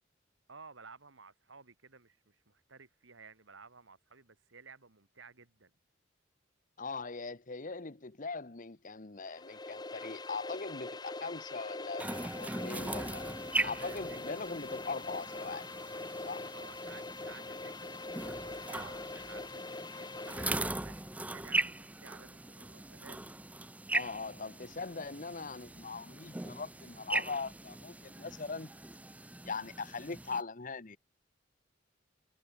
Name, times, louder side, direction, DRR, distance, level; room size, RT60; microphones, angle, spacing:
voice 1, 0.5-5.7 13.5-14.5 16.5-21.1 21.3-23.3, right 4 dB, 90° right, 2.6 m, -55 dB
voice 2, 6.8-13.3 13.6-15.7 16.2-16.5 23.9-28.7 29.4-31.0, left 4 dB, 45° left, 1.1 m, -41 dB
sound 1, 9.2-20.9, left 2 dB, 20° left, 1.1 m, -43 dB
sound 2, 12.0-30.4, right 2 dB, 10° right, 0.5 m, -40 dB
head